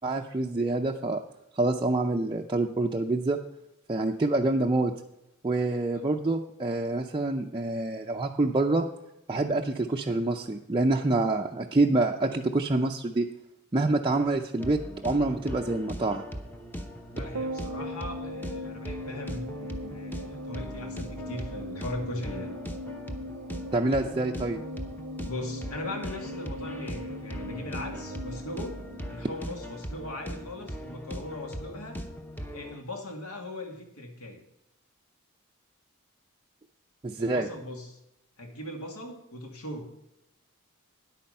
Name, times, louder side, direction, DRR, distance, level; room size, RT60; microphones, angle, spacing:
voice 1, 0.0-1.2 1.6-3.4 3.9-4.9 5.4-8.8 9.3-13.3 13.7-16.2 23.7-24.6 37.0-37.5, right 2 dB, 20° right, 0 dB, 0.5 m, -26 dB
sound 1, 14.6-32.8, equal, 10° left, 0.8 m, -39 dB
voice 2, 17.1-22.5 25.2-28.8 29.1-32.0 32.5-34.4 37.2-38.0 38.4-39.9, left 1 dB, 75° left, 3 dB, 2.2 m, -39 dB
sound 2, 17.3-29.9 30.1-30.2, equal, 80° right, 0.7 m, -40 dB
10.0 x 8.7 x 5.4 m, 0.86 s
head